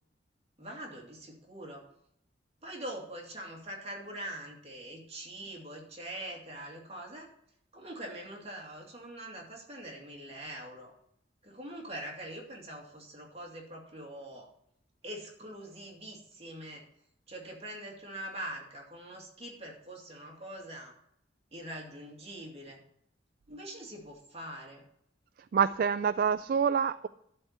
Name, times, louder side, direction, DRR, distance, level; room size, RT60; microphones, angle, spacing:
voice 1, 0.6-1.9 2.6-7.3 7.7-10.9 11.4-14.5 15.0-16.8 17.3-20.9 21.5-22.8 23.5-24.8, right 1 dB, 35° right, 0 dB, 2.4 m, -43 dB
voice 2, 25.5-27.1, right 7 dB, 55° right, 13 dB, 0.3 m, -26 dB
11.5 x 4.6 x 8.1 m, 0.72 s
head